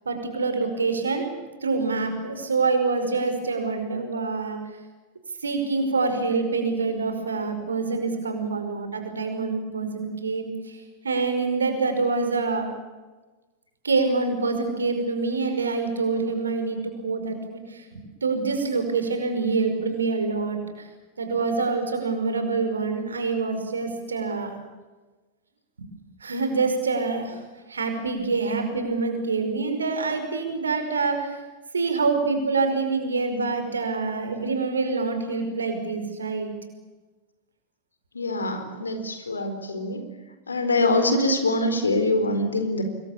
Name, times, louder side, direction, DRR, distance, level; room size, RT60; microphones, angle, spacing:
voice 1, 0.1-1.3 1.6-4.6 5.4-12.7 13.8-20.9 21.2-24.5 25.8-25.9 26.2-27.4 27.7-31.4 31.7-36.5, right 4 dB, 75° right, 6 dB, 5.3 m, -26 dB
voice 2, 38.1-40.0 40.5-42.8, left 2 dB, 75° left, 8 dB, 4.3 m, -24 dB
26.5 x 22.0 x 8.7 m, 1.2 s
figure-of-eight pair, 90°, 0 cm